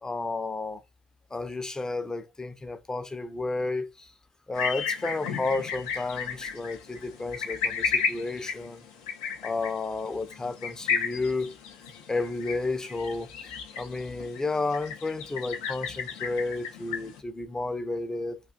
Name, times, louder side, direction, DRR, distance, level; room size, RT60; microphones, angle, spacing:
voice 1, 0.0-0.8 1.3-4.1 4.5-8.8 9.4-11.5 12.1-18.4, left 3 dB, 20° left, 0.5 m, -32 dB
sound 1, 4.5-17.2, left 6 dB, 80° left, 0.5 m, -34 dB
2.5 x 2.3 x 2.3 m
hypercardioid pair, 55°, 3 cm